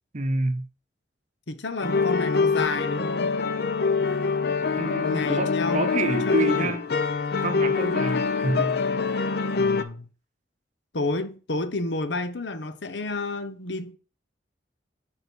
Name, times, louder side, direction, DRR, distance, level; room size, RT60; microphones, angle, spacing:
voice 1, 0.1-0.7 4.8-6.8 7.4-8.8, right 2 dB, 40° right, 0.8 m, -28 dB
voice 2, 1.5-3.4 5.0-6.0 6.2-6.8 9.6-10.1 10.9-14.0, left 2 dB, 85° left, 1.0 m, -30 dB
sound 1, 1.8-9.8, left 5 dB, 60° left, 0.6 m, -25 dB
5.5 x 5.2 x 6.2 m
head